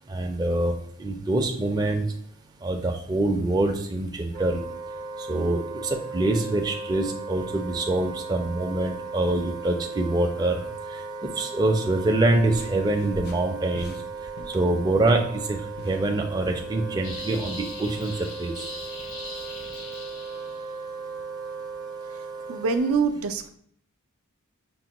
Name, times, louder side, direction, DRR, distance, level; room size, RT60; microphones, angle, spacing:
voice 1, 0.1-0.7 1.0-2.0 2.6-4.6 5.3-10.6 11.4-13.9 14.5-15.6 15.8-18.7, right 2 dB, 20° right, 2 dB, 0.4 m, -25 dB
Wind instrument woodwind instrument, 4.3-23.0, right 4 dB, 50° right, 0.7 m, -37 dB
sound 1, 12.5-15.4 15.7-16.7, left 2 dB, 50° left, 0.4 m, -43 dB
sound 2, 17.0-20.7, left 2 dB, 75° left, 0.9 m, -40 dB
voice 2, 22.5-23.5, right 5 dB, 80° right, 8 dB, 0.4 m, -24 dB
5.9 x 2.1 x 2.9 m, 0.62 s
head